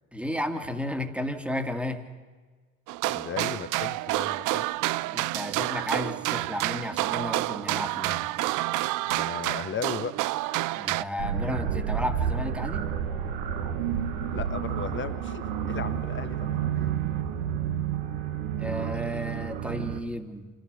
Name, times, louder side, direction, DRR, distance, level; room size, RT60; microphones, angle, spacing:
voice 1, 0.1-2.1 5.1-8.3 10.7-12.8 18.6-20.5, left 1 dB, 5° right, 7 dB, 2.1 m, -33 dB
sound 1, 2.9-11.0, right 17 dB, 50° right, 0.6 m, -29 dB
voice 2, 3.1-4.7 9.1-10.2 14.3-16.9, left 6 dB, 30° left, 11 dB, 1.4 m, -36 dB
sound 2, 11.2-20.0, right 8 dB, 65° right, 1.8 m, -30 dB
27.0 x 14.0 x 6.8 m, 1.4 s
hypercardioid pair, 65°, 42 cm